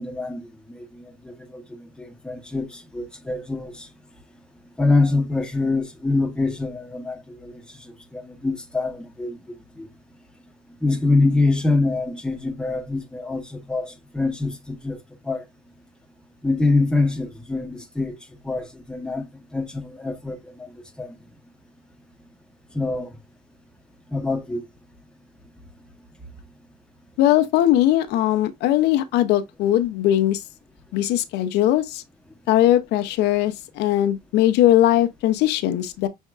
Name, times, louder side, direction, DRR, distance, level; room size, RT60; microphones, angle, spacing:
voice 1, 0.0-3.9 4.8-7.5 7.8-9.9 10.8-15.0 15.2-15.4 16.4-18.2 18.4-20.7 21.0-21.2 22.7-23.1 24.1-24.7, left 3 dB, 5° left, 1.0 m, -25 dB
voice 2, 27.2-30.4 30.9-32.0 32.5-36.1, left 13 dB, 85° left, 0.6 m, -20 dB
6.4 x 3.5 x 2.4 m
cardioid pair, 110°, 17 cm